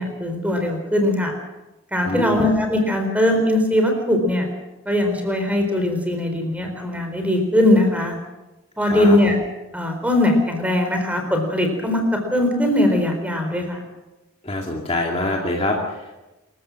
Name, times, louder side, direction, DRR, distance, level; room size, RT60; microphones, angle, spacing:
voice 1, 0.0-1.3 1.9-4.5 4.9-8.1 8.8-9.4 9.7-12.0 12.3-13.8, left 1 dB, 5° right, 4 dB, 4.1 m, -20 dB
voice 2, 2.1-2.5 8.8-9.2 14.4-16.1, left 1 dB, 25° left, 0 dB, 2.4 m, -25 dB
26.5 x 14.5 x 7.6 m, 1.0 s
head